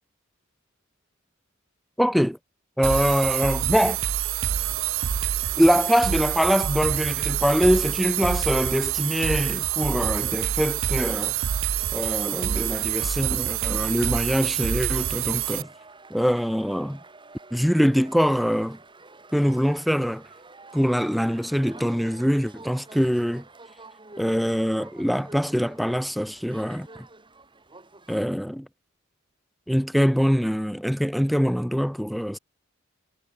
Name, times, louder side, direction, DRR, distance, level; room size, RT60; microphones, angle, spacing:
voice 1, 2.0-2.4 2.8-4.0 5.6-11.3 11.9-15.7 16.1-17.0 17.5-18.8 19.3-20.2 20.7-23.4 24.2-26.9 28.1-28.7 29.7-32.4, equal, ahead, 0.7 m, -23 dB
sound 1, 2.8-15.6, right 10 dB, 85° right, 0.5 m, -27 dB
sound 2, 14.9-28.3, right 3 dB, 25° right, 3.5 m, -48 dB
head